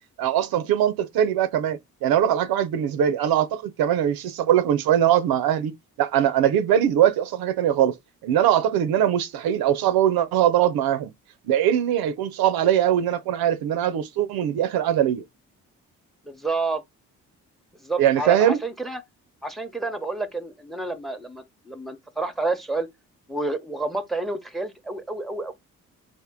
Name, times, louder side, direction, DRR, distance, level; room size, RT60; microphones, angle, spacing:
voice 1, 0.2-7.9 8.2-11.1 11.5-15.2 18.0-18.6, right 10 dB, 75° right, 0.6 m, -21 dB
voice 2, 16.2-16.8 17.8-19.0 19.4-22.9 23.3-25.5, right 3 dB, ahead, 0.8 m, -29 dB
3.5 x 2.5 x 3.5 m
hypercardioid pair, 45°, 37 cm